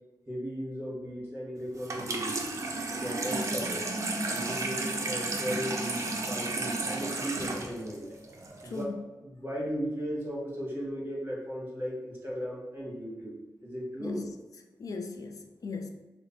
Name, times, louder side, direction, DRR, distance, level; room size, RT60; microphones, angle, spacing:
voice 1, 0.3-2.4 2.9-3.9 4.3-8.1 8.6-13.3 13.6-14.3, equal, 30° right, -5 dB, 1.2 m, -36 dB
Water tap faucet / Sink (filling or washing), 1.8-8.8, right 2 dB, 45° right, 0.5 m, -33 dB
voice 2, 8.6-9.1 14.0-14.3 14.8-15.9, left 3 dB, 55° left, 5 dB, 0.4 m, -37 dB
3.1 x 2.0 x 3.9 m, 1.1 s
wide cardioid pair, 95°, 7 cm